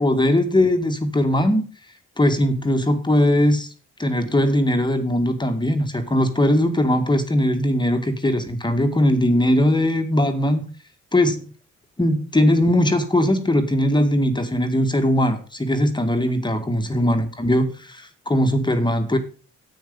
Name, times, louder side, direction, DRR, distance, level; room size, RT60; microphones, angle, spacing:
voice 1, 0.0-1.6 2.2-3.7 4.0-10.6 11.1-11.5 12.0-19.2, left 1 dB, 15° left, 6 dB, 1.9 m, -20 dB
10.5 x 8.6 x 5.3 m, 0.38 s
cardioid pair, 90°, 30 cm